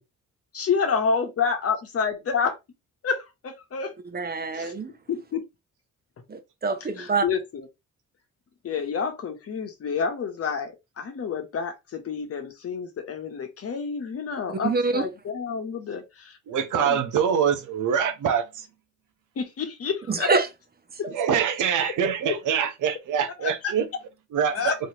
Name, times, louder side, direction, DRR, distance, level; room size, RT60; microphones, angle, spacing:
voice 1, 0.5-2.6 3.0-4.0 4.5-4.7 5.1-5.4 7.0-7.7 8.6-16.4 16.7-17.0 19.4-20.3 23.4-23.7 24.4-24.8, left 6 dB, 50° left, 1.1 m, -29 dB
voice 2, 4.1-4.9 6.3-7.2 14.6-15.1 20.1-20.5, right 4 dB, 30° right, 0.9 m, -25 dB
voice 3, 16.5-18.6 21.1-23.9 24.3-24.7, right 7 dB, 75° right, 1.0 m, -24 dB
4.3 x 3.2 x 2.9 m
cardioid pair, 100°, 31 cm